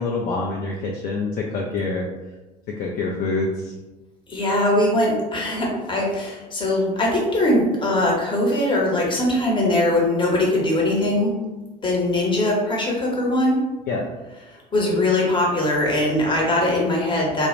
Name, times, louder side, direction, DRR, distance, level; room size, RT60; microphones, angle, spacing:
voice 1, 0.0-2.1 2.7-3.7 13.9-14.1, left 3 dB, 45° left, -1 dB, 0.4 m, -26 dB
voice 2, 4.3-11.4 11.8-13.6 14.5-17.5, left 1 dB, 25° left, -2 dB, 0.9 m, -21 dB
2.3 x 2.0 x 3.0 m, 1.1 s
hypercardioid pair, 65°, 21 cm